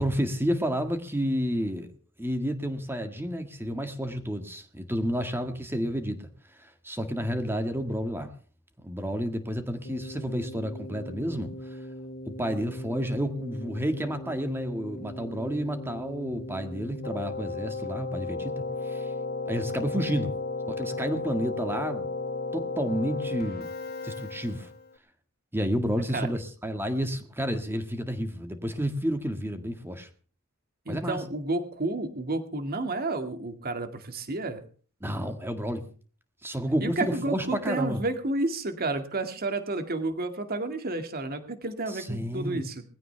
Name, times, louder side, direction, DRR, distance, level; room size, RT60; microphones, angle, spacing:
voice 1, 0.0-1.9 2.2-6.3 6.6-8.3 8.8-11.5 12.4-19.1 19.5-20.3 20.7-22.1 22.5-23.7 24.0-24.7 25.5-30.1 30.9-31.2 35.0-35.8 36.4-38.0 41.9-42.6, equal, 10° right, 7 dB, 1.8 m, -30 dB
Keyboard (musical), 9.8-24.9, left 3 dB, 45° left, 2.4 m, -36 dB
voice 2, 30.9-34.6 36.8-42.8, right 2 dB, 45° right, 7 dB, 2.1 m, -31 dB
21.0 x 16.0 x 3.4 m, 0.41 s
head